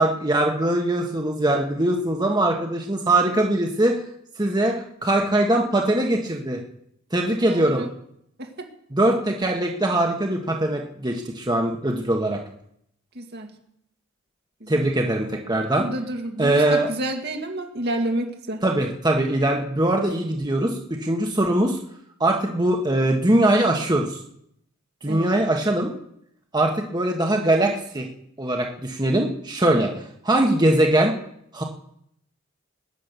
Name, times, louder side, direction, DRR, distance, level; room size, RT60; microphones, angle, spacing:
voice 1, 0.0-3.9 4.4-6.6 7.1-7.8 8.9-12.4 14.7-15.8 16.4-16.9 18.6-20.7 21.0-21.8 22.2-24.2 25.0-25.9 26.5-28.1 28.4-29.9 30.2-31.1 31.5-31.6, right 1 dB, 20° right, 1 dB, 1.4 m, -21 dB
voice 2, 7.4-7.9 8.4-8.7 13.2-13.5 14.6-14.8 15.8-18.6 25.1-25.3, right 1 dB, 50° right, 4 dB, 2.2 m, -29 dB
20.0 x 10.0 x 6.8 m, 0.75 s
head